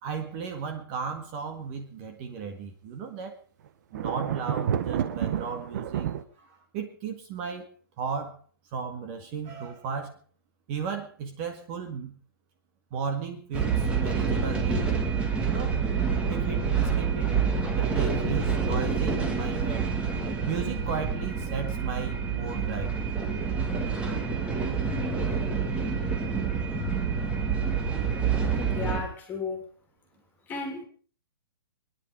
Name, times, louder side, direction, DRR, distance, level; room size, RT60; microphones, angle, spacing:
voice 1, 0.0-3.3 3.9-6.1 6.4-7.7 8.0-8.4 8.7-10.2 10.7-12.2 12.9-14.9 15.4-15.8 16.3-17.4 17.7-19.9 20.4-23.1, right 6 dB, 30° right, 5 dB, 1.9 m, -35 dB
sound 1, 3.9-6.2, right 9 dB, 45° right, 1.2 m, -29 dB
sound 2, 13.5-29.0, right 5 dB, 10° right, 1.8 m, -27 dB
voice 2, 28.7-29.6 30.5-30.8, left 4 dB, 15° left, 4 dB, 3.0 m, -34 dB
24.5 x 10.5 x 5.0 m, 0.40 s
hypercardioid pair, 160°, 13 cm